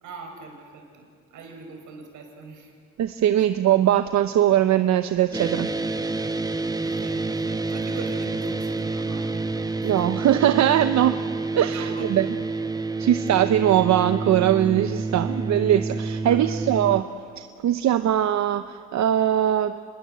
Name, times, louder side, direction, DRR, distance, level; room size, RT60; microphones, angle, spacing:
voice 1, 0.0-2.7 3.3-3.5 6.8-9.9 11.7-12.4 12.9-13.1 16.3-16.7, right 4 dB, 80° right, 3 dB, 5.3 m, -41 dB
voice 2, 3.0-5.7 9.8-11.2 11.5-12.3 13.0-17.0 17.4-19.8, right 11 dB, 65° right, 10 dB, 0.8 m, -21 dB
sound 1, 5.3-17.0, right 3 dB, 10° right, 1.0 m, -28 dB
26.0 x 21.0 x 7.7 m, 2.1 s
cardioid pair, 90°, 30 cm